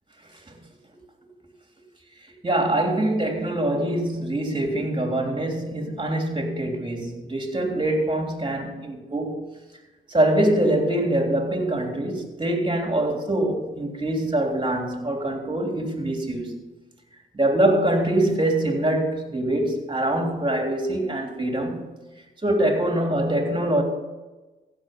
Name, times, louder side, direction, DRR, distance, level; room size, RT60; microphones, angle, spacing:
voice 1, 2.4-9.5 10.1-16.6 17.3-21.9 22.4-23.8, right 1 dB, 25° right, 3.4 m, -24 dB
15.5 x 6.7 x 5.3 m
cardioid pair, 55°, 20 cm